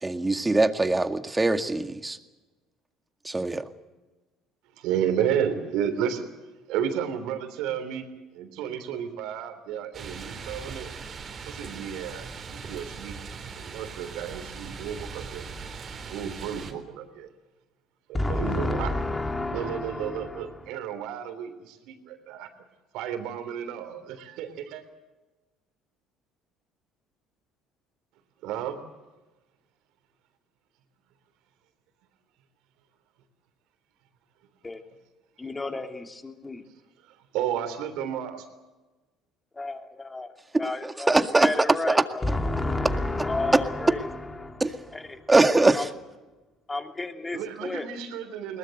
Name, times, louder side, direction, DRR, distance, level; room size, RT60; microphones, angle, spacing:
voice 1, 0.0-2.2 3.2-3.7 40.8-41.5 41.9-42.1 44.6-44.8 45.3-45.9, right 2 dB, 15° right, 8 dB, 2.0 m, -22 dB
voice 2, 4.8-6.3 6.7-10.9 11.5-13.2 13.6-15.4 16.1-17.3 18.1-18.9 19.5-22.5 22.9-24.8 28.4-28.8 37.0-38.5 47.3-48.6, right 9 dB, 70° right, 9 dB, 3.5 m, -32 dB
sound 1, 9.9-16.7, right 5 dB, 45° right, 3.6 m, -40 dB
voice 3, 18.1-20.6 34.6-34.8 35.4-36.6 39.5-40.3 40.6-44.6 44.9-45.3 45.7-45.9 46.7-47.9, left 2 dB, 20° left, 5 dB, 3.0 m, -31 dB
21.5 x 19.5 x 7.9 m, 1.1 s
hypercardioid pair, 65°, 0 cm